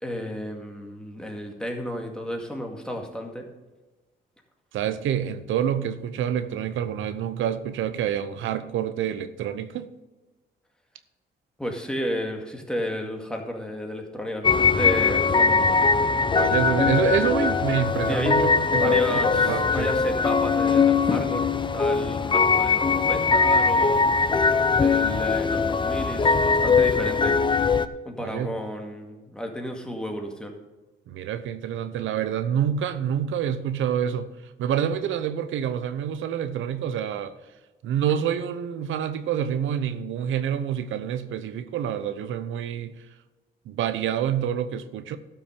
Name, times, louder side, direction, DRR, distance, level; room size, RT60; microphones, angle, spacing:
voice 1, 0.0-3.5 11.6-15.8 18.1-18.3 18.7-27.4 28.1-30.6, equal, 5° left, 2 dB, 2.1 m, -32 dB
voice 2, 4.7-9.9 16.3-19.9 28.2-28.6 31.1-34.3 34.6-37.3 37.8-43.0 43.7-45.2, right 9 dB, 90° right, 11 dB, 0.8 m, -27 dB
sound 1, 14.4-27.9, left 5 dB, 25° left, 0.5 m, -21 dB
12.5 x 6.0 x 5.3 m, 1.2 s
cardioid pair, 90°, 20 cm